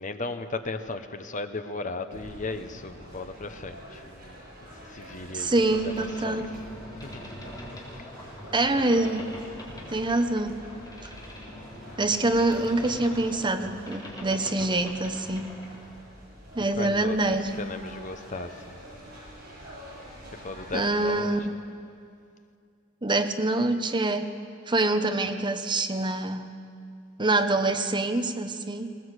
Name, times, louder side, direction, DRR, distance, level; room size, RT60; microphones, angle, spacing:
voice 1, 0.0-4.4 4.7-6.5 7.0-7.2 7.6-7.7 16.8-18.8 20.3-21.3, left 3 dB, 40° left, 9 dB, 1.1 m, -36 dB
sound 1, 2.1-21.3, equal, 45° right, 7.9 m, -46 dB
voice 2, 5.3-6.5 8.5-9.3 9.9-10.6 11.0-11.1 12.0-15.5 16.6-17.6 20.7-21.5 23.0-24.3 24.7-26.5 27.2-29.0, right 2 dB, 25° right, 8 dB, 1.0 m, -25 dB
Boat Water vehicle, 5.4-15.9, left 1 dB, 20° left, 3.9 m, -43 dB
20.5 x 18.0 x 8.2 m, 2.3 s
head